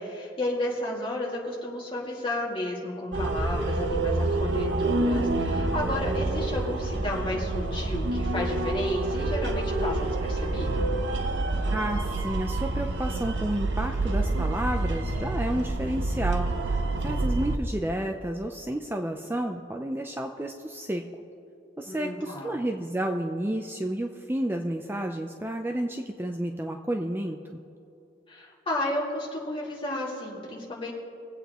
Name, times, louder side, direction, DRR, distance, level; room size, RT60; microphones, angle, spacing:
voice 1, 0.0-10.9 21.9-22.6 28.3-30.9, left 1 dB, 30° left, -4 dB, 2.3 m, -32 dB
sound 1, 3.1-17.6, right 2 dB, 80° right, 0.9 m, -27 dB
voice 2, 11.7-21.0 21.8-27.6, right 1 dB, 10° right, 4 dB, 0.5 m, -31 dB
24.0 x 8.3 x 3.0 m, 2.6 s
head